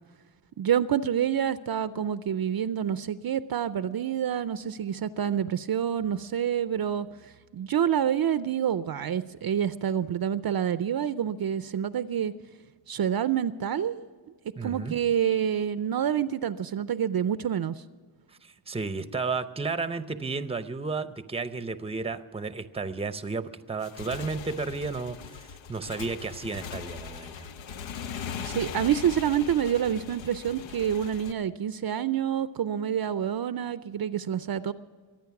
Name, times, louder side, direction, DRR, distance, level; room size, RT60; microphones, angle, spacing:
voice 1, 0.6-12.3 12.9-14.0 14.6-17.8 28.4-34.7, right 9 dB, 55° right, 14 dB, 0.5 m, -27 dB
voice 2, 14.6-14.9 18.4-27.5, right 4 dB, 15° right, 12 dB, 0.6 m, -33 dB
Motorcycle / Engine, 23.7-31.3, left 7 dB, 85° left, 0.7 m, -40 dB
23.5 x 9.0 x 5.9 m, 1.5 s
wide cardioid pair, 120°, 45 cm